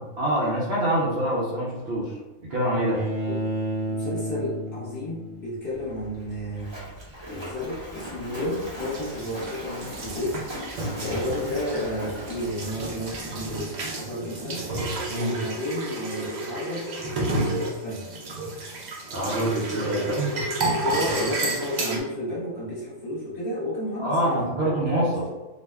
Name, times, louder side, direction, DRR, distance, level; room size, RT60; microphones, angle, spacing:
voice 1, 0.2-2.1 2.4-3.0 15.1-15.3 19.1-20.3 24.0-25.2, right 1 dB, 60° right, -6 dB, 0.7 m, -25 dB
Bowed string instrument, 2.9-6.0, right 1 dB, 20° left, 0.5 m, -31 dB
voice 2, 3.9-6.7 7.3-10.4 11.0-13.7 13.9-14.7 15.3-16.9 17.2-18.1 19.9-20.1 20.8-25.3, left 1 dB, 45° left, -8 dB, 1.0 m, -32 dB
Splash splatter, 5.7-13.6, equal, 25° right, 0.7 m, -40 dB
sound 1, 8.3-22.0, right 2 dB, 80° right, 0.4 m, -31 dB
2.4 x 2.1 x 3.3 m, 1.1 s
omnidirectional pair, 1.4 m